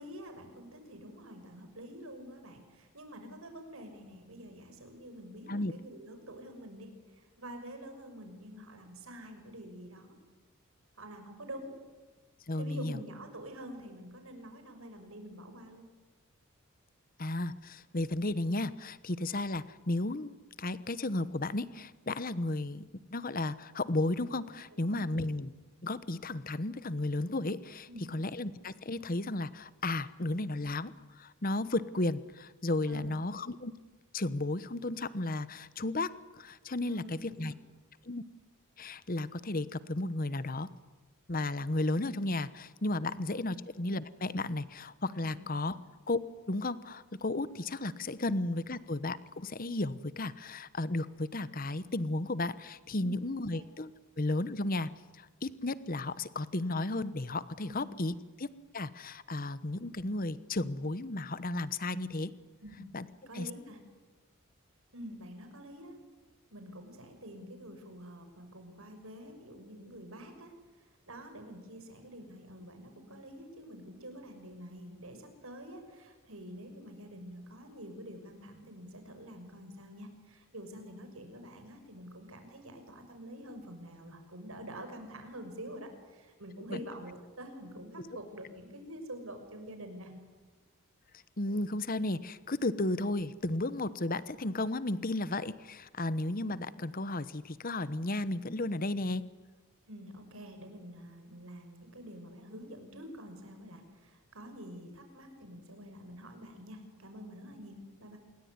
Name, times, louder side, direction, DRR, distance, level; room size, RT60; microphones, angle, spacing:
voice 1, 0.0-10.1 11.0-11.8 12.5-15.9 24.7-25.1 27.9-28.1 32.9-33.2 36.9-37.6 43.0-43.2 45.2-45.5 48.2-48.4 53.0-53.2 53.5-53.6 57.7-57.8 62.6-62.8 63.3-63.8 64.9-66.0 66.5-90.1 99.9-108.2, equal, 70° right, 6 dB, 6.2 m, -47 dB
voice 2, 12.5-13.0 17.2-22.8 23.1-25.5 25.8-33.7 34.1-37.5 38.0-38.2 38.8-40.7 41.3-45.8 46.1-46.2 46.5-53.9 54.2-54.9 55.2-62.3 62.9-63.1 63.3-63.5 86.7-86.8 91.4-99.2, left 2 dB, 40° left, 16 dB, 1.1 m, -34 dB
27.0 x 22.5 x 9.8 m, 1.3 s
head